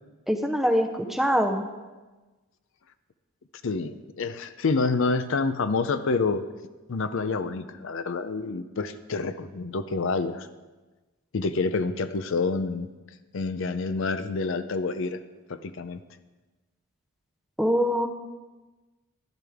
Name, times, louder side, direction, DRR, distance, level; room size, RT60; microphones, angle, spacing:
voice 1, 0.3-1.6 17.6-18.1, equal, ahead, 5 dB, 0.6 m, -23 dB
voice 2, 3.6-6.4 6.9-10.5 11.3-12.9 13.3-15.2 15.5-16.0, left 4 dB, 60° left, 11 dB, 0.5 m, -28 dB
12.0 x 11.0 x 3.5 m, 1.2 s
head